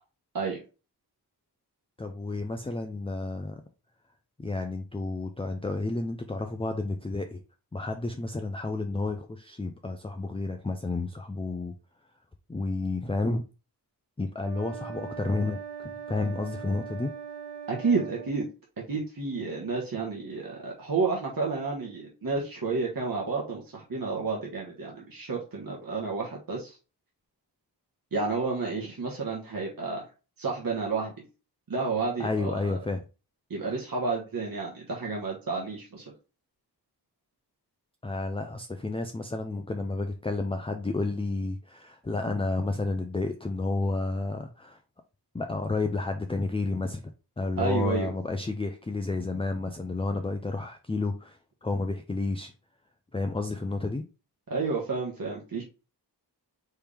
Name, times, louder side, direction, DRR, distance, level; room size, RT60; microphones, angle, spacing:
voice 1, 2.0-3.6 4.4-7.4 7.7-11.7 12.5-13.4 14.2-17.1 32.2-33.1 38.0-44.8 45.3-47.0 47.4-52.5 53.1-54.0, left 3 dB, 15° left, 0.5 m, -31 dB
sound 1, 14.4-18.3, right 7 dB, 85° right, 1.2 m, -40 dB
voice 2, 17.7-18.5 18.9-26.8 28.1-30.0 30.4-31.1 31.7-32.7 33.5-36.0 47.6-48.1 54.5-55.6, right 4 dB, 55° right, 1.4 m, -30 dB
4.4 x 3.5 x 3.4 m
wide cardioid pair, 65°, 41 cm